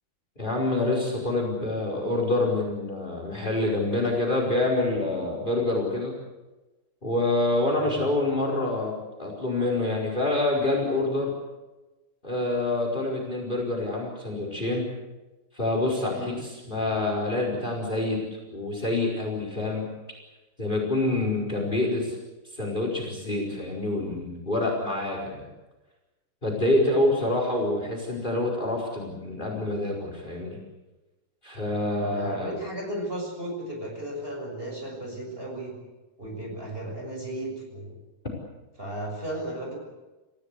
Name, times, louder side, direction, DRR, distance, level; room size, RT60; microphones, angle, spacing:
voice 1, 0.4-6.1 7.0-8.9 9.2-11.3 12.2-14.9 15.5-18.2 18.5-19.9 20.6-22.2 22.4-25.5 26.4-30.6 31.4-32.5, left 2 dB, 20° left, 1 dB, 4.8 m, -26 dB
voice 2, 32.0-35.7 36.2-38.0 38.8-39.8, right 1 dB, 25° right, 0 dB, 6.9 m, -35 dB
29.5 x 16.0 x 8.2 m, 1.1 s
omnidirectional pair, 2.4 m